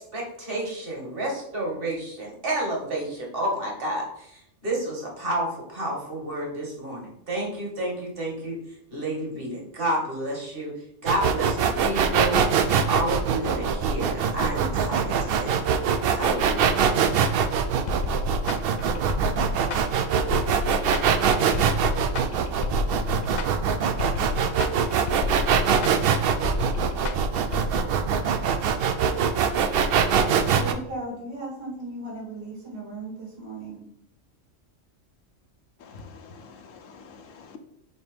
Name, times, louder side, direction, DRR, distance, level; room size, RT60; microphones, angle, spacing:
voice 1, 0.0-8.6 8.9-10.7 11.0-15.6 16.1-16.8, right 1 dB, 45° right, -2 dB, 1.9 m, -30 dB
sound 1, 11.1-30.7, right 7 dB, 65° right, 0.6 m, -23 dB
sound 2, 17.9-27.7, left 4 dB, 55° left, 0.5 m, -31 dB
voice 2, 30.5-33.8, right 2 dB, 90° right, -5 dB, 3.1 m, -36 dB
voice 3, 35.8-37.6, left 5 dB, 75° left, 6 dB, 1.1 m, -46 dB
6.5 x 2.8 x 5.0 m, 0.71 s
omnidirectional pair, 1.3 m